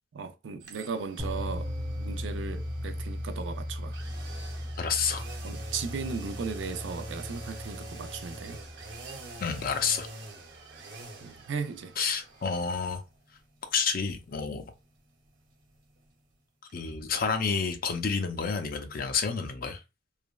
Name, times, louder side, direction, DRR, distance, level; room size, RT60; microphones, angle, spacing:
voice 1, 0.2-1.7 2.0-4.0 5.4-8.6 11.2-11.9, right 5 dB, 90° right, 0.4 m, -36 dB
sound 1, 0.6-16.4 16.7-16.8, right 2 dB, 75° right, 0.9 m, -46 dB
sound 2, 1.2-9.3, left 1 dB, 20° right, 0.6 m, -37 dB
voice 2, 4.8-5.2 9.4-10.1 12.0-13.0 13.7-14.7 16.7-19.8, left 5 dB, 50° left, 0.5 m, -29 dB
3.3 x 2.0 x 2.3 m
head